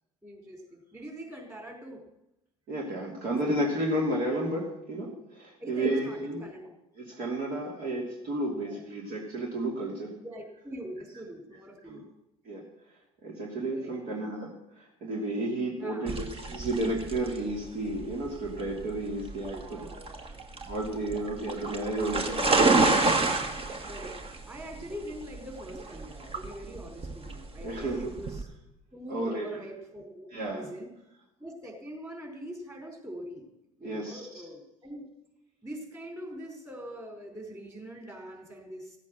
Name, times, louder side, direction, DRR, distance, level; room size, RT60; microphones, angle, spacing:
voice 1, 0.2-2.0 5.6-6.7 8.5-8.8 10.2-12.1 13.7-13.9 15.8-16.2 19.5-20.3 21.6-22.6 23.8-24.2 24.5-28.5 28.9-30.9 31.4-33.5 33.8-35.1 35.6-39.0, equal, 15° right, 2 dB, 4.3 m, -43 dB
voice 2, 2.7-6.4 7.0-10.2 11.9-12.0 12.4-12.7 13.2-19.9 20.6-22.6 27.6-28.1 29.1-29.5 30.3-30.7 33.8-34.3, right 1 dB, 55° right, -1 dB, 2.8 m, -32 dB
sound 1, 16.1-28.4, right 3 dB, 35° right, 1.7 m, -29 dB
15.5 x 8.3 x 6.5 m, 0.88 s
hypercardioid pair, 65°, 17 cm